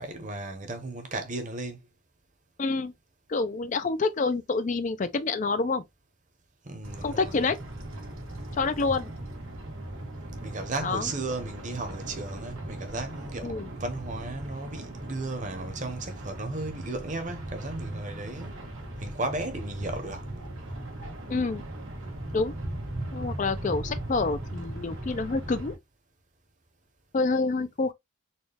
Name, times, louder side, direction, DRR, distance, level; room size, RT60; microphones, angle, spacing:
voice 1, 0.0-1.8 6.6-7.3 10.4-18.6 19.0-20.3, right 2 dB, 35° right, 0.9 m, -35 dB
voice 2, 2.6-2.9 3.3-5.8 7.0-7.6 8.6-9.1 10.8-11.1 13.4-13.7 21.3-21.6 22.3-22.5 23.1-25.8 27.1-27.9, left 3 dB, 35° left, 0.4 m, -27 dB
sound 1, 6.8-25.7, right 1 dB, 85° right, 1.4 m, -38 dB
4.2 x 2.3 x 3.3 m
head